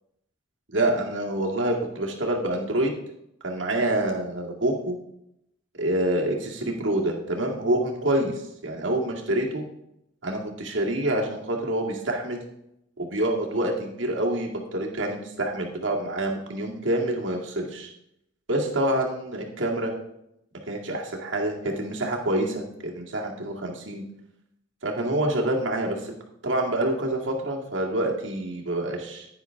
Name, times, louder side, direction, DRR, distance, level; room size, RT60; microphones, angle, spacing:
voice 1, 0.7-2.9 3.4-4.9 5.8-9.7 10.2-12.4 13.0-17.9 18.5-19.9 20.7-24.0 24.8-26.1 26.4-29.3, right 1 dB, 70° right, 0 dB, 2.1 m, -27 dB
10.0 x 9.7 x 3.6 m, 0.79 s
head